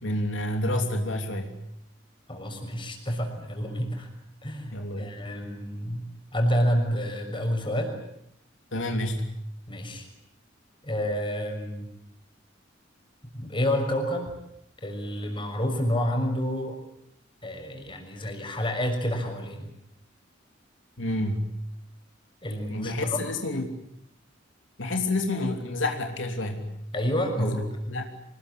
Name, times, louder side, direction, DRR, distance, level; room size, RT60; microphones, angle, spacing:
voice 1, 0.0-1.5 4.7-5.2 8.7-9.3 21.0-21.5 22.7-23.7 24.8-26.7 27.4-27.5 27.9-28.1, left 1 dB, 80° left, 4 dB, 3.2 m, -29 dB
voice 2, 2.3-4.1 4.4-6.0 6.3-8.0 9.7-10.1 10.8-11.9 13.3-14.3 14.8-16.8 17.4-19.7 22.4-23.2 26.9-27.6, equal, 25° left, 4 dB, 6.2 m, -29 dB
25.5 x 21.0 x 10.0 m, 0.77 s
head